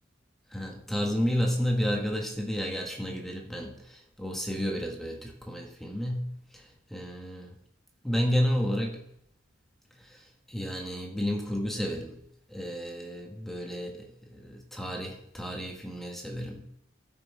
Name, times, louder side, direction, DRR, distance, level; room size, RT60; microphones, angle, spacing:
voice 1, 0.5-6.6 6.9-7.5 8.0-9.0 10.0-12.2 12.5-16.6, equal, ahead, 1 dB, 1.5 m, -31 dB
12.5 x 5.8 x 4.9 m, 0.72 s
head